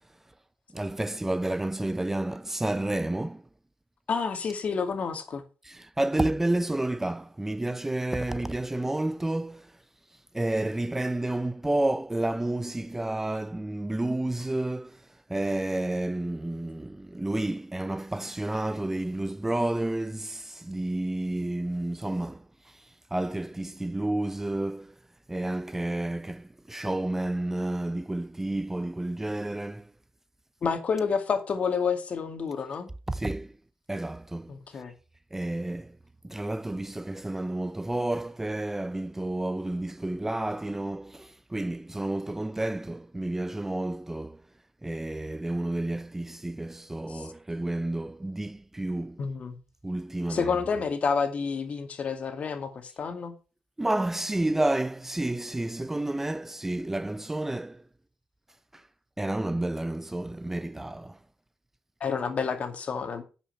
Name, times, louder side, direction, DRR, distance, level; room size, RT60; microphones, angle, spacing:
voice 1, 0.7-3.4 5.6-9.7 10.3-15.0 15.3-24.9 25.3-29.9 33.1-33.5 33.9-34.8 35.3-36.0 36.2-44.4 44.8-49.2 49.8-50.5 53.8-57.8 58.7-58.8 59.2-61.2, right 1 dB, 10° right, 0.5 m, -30 dB
voice 2, 4.1-5.4 30.6-32.9 34.5-34.9 47.1-47.3 49.2-49.6 50.3-53.4 62.0-63.2, left 5 dB, 50° left, 2.2 m, -29 dB
10.5 x 5.8 x 6.7 m
cardioid pair, 85°, 3 cm